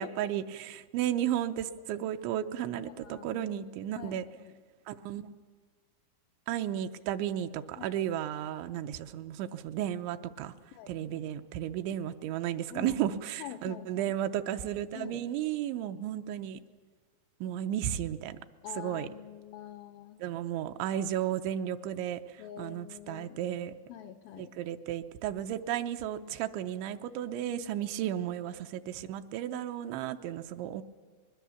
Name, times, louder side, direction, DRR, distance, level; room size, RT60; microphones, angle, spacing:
voice 1, 0.0-4.2 4.9-5.3 6.5-10.5 10.9-16.6 17.4-18.4 18.8-19.1 20.2-22.2 22.6-23.7 24.6-30.8, right 11 dB, 90° right, 7 dB, 3.1 m, -34 dB
voice 2, 2.8-3.6 4.0-4.6 7.8-8.0 10.7-11.3 12.7-14.2 14.9-15.2 18.6-20.3 22.4-23.4 23.9-24.5 27.8-28.1, left 11 dB, 85° left, 6 dB, 2.0 m, -46 dB
24.0 x 21.0 x 7.1 m, 1.5 s
omnidirectional pair, 5.1 m